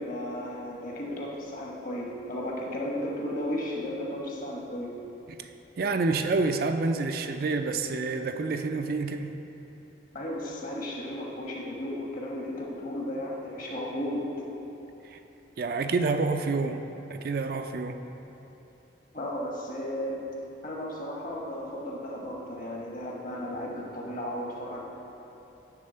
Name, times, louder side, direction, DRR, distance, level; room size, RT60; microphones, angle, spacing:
voice 1, 0.0-4.9 10.1-14.3 19.1-20.3 20.6-24.8, left 1 dB, 45° left, -2 dB, 1.2 m, -34 dB
voice 2, 5.8-9.3 15.0-15.2 15.6-16.8 17.1-18.0, right 3 dB, 50° right, 7 dB, 0.4 m, -28 dB
9.7 x 3.6 x 6.6 m, 3.0 s
head